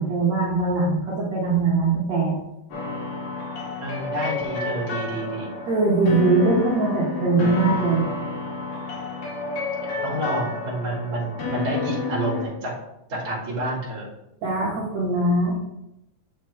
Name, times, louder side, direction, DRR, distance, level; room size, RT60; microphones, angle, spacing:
voice 1, 0.0-2.3 5.7-8.1 14.4-15.6, right 3 dB, 70° right, -5 dB, 1.7 m, -21 dB
sound 1, 2.7-12.5, left 4 dB, 50° left, 3.2 m, -30 dB
voice 2, 3.8-5.5 10.0-12.7 13.1-14.1, right 1 dB, 25° right, -5 dB, 1.8 m, -29 dB
7.3 x 6.6 x 3.3 m, 0.86 s
omnidirectional pair, 5.2 m